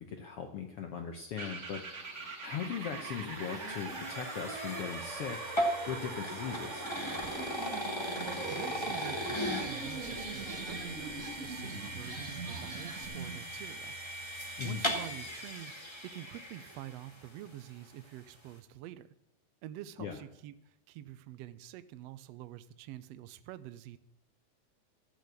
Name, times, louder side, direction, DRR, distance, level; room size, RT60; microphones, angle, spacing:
voice 1, 0.0-1.8 2.4-5.4 5.9-6.8 14.6-14.8 20.0-20.2, left 7 dB, 70° left, 4 dB, 1.4 m, -39 dB
sound 1, 1.4-13.4, right 3 dB, 55° right, 0.8 m, -42 dB
sound 2, 2.1-17.3, equal, 25° left, 0.6 m, -38 dB
sound 3, 7.2-7.3 7.7-13.0, right 2 dB, 25° right, 1.3 m, -48 dB
voice 2, 8.2-13.9 14.6-15.7 16.0-19.1 19.6-24.0, right 13 dB, 90° right, 13 dB, 1.4 m, -47 dB
14.0 x 6.3 x 8.3 m, 0.78 s
omnidirectional pair, 3.7 m